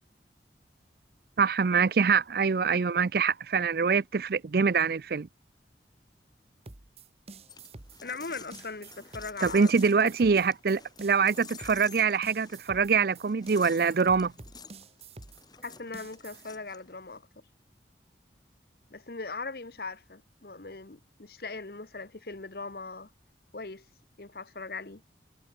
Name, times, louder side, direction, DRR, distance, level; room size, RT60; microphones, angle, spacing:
voice 1, 1.4-5.3 9.4-14.3, right 5 dB, 55° right, 0.5 m, -24 dB
sound 1, 6.7-16.5, right 3 dB, 35° right, 1.2 m, -48 dB
sound 2, 7.5-17.2, left 6 dB, 25° left, 6.6 m, -51 dB
voice 2, 8.0-10.1 15.6-17.3 18.9-23.1 23.5-23.9 24.2-25.0, left 3 dB, 60° left, 1.2 m, -40 dB
head